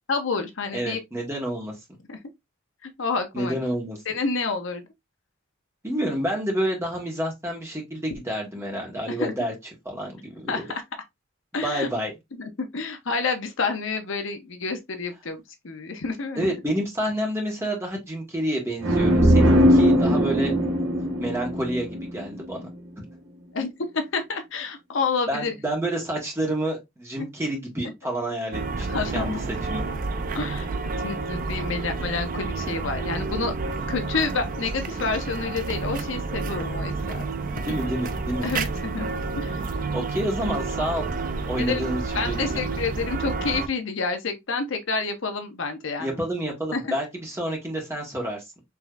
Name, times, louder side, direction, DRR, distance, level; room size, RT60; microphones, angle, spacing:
voice 1, 0.1-1.0 2.1-2.2 2.8-3.6 4.1-4.8 9.2-9.3 10.5-10.8 11.5-11.9 12.3-16.5 23.5-25.5 28.9-29.4 30.3-30.7 31.0-33.5 33.9-37.2 38.4-39.1 39.3-39.6 41.6-41.8 42.1-46.2 46.7-47.0, left 4 dB, 65° left, 0.7 m, -29 dB
voice 2, 0.7-1.7 3.3-4.0 5.8-9.5 9.8-10.6 11.5-12.1 16.4-20.5 21.2-22.7 25.3-28.9 29.1-29.4 29.7-29.8 37.7-38.5 39.9-41.1 41.5-42.6 46.0-48.4, right 1 dB, 10° right, 1.3 m, -29 dB
sound 1, 18.8-22.5, equal, 75° right, 1.2 m, -20 dB
sound 2, 28.5-43.7, right 4 dB, 40° right, 0.4 m, -30 dB
4.7 x 3.1 x 2.4 m
head